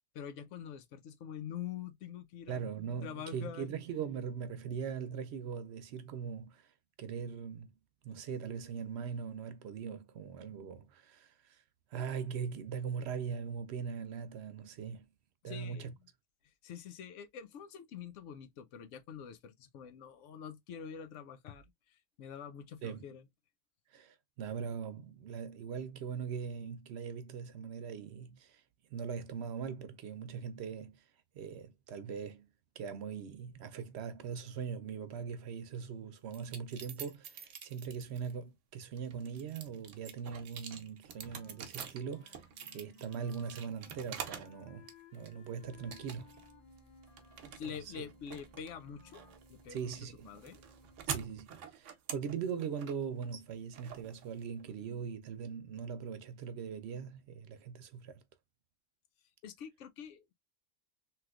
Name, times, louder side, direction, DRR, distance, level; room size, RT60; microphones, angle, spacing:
voice 1, 0.1-2.6 3.0-3.7 15.4-15.9 16.6-23.2 47.5-49.2 49.5-49.9 50.3-50.6 59.4-60.3, left 8 dB, 80° left, 0.9 m, -46 dB
voice 2, 2.5-6.7 7.0-7.7 8.0-11.6 11.9-15.1 15.4-15.9 22.8-23.1 23.9-28.6 28.9-31.0 31.3-32.5 32.8-42.5 42.7-46.3 47.6-47.9 49.7-50.3 51.1-58.2, right 6 dB, 70° right, 0.8 m, -41 dB
sound 1, 36.3-38.3 38.8-44.6 44.9-45.5 45.9-46.5 46.8-54.7, right 7 dB, 90° right, 1.0 m, -46 dB
Wind instrument woodwind instrument, 41.1-49.4, left 7 dB, 55° left, 0.8 m, -62 dB
sound 2, 45.6-51.4, right 1 dB, 30° left, 1.1 m, -61 dB
3.2 x 3.0 x 2.3 m
omnidirectional pair, 1.2 m